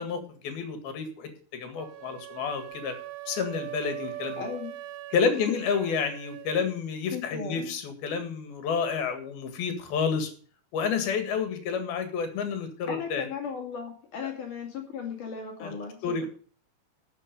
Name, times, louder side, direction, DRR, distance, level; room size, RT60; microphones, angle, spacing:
voice 1, 0.0-2.9 3.3-4.4 5.1-10.3 10.7-13.3 15.6-15.7 16.0-16.3, left 6 dB, 80° left, 8 dB, 3.8 m, -30 dB
sound 1, 1.7-6.7, right 14 dB, 85° right, 2.6 m, -41 dB
voice 2, 4.4-4.7 5.2-5.5 7.1-7.7 12.9-16.3, left 6 dB, 60° left, 1 dB, 3.9 m, -36 dB
12.0 x 7.9 x 5.3 m, 0.43 s
omnidirectional pair, 4.3 m